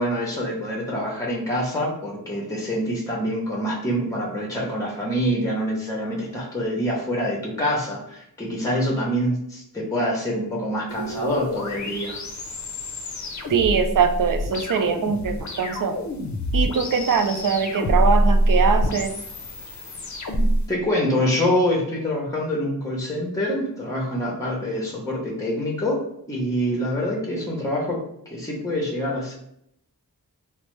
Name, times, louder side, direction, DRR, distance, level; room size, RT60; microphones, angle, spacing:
voice 1, 0.0-12.2 20.4-29.4, equal, 10° left, -2 dB, 0.8 m, -26 dB
sound 1, 10.9-20.6, equal, 50° left, 0.6 m, -25 dB
voice 2, 13.5-16.0 16.5-19.1, right 6 dB, 60° right, 7 dB, 0.5 m, -22 dB
3.1 x 2.1 x 3.0 m, 0.73 s
cardioid pair, 50°, 38 cm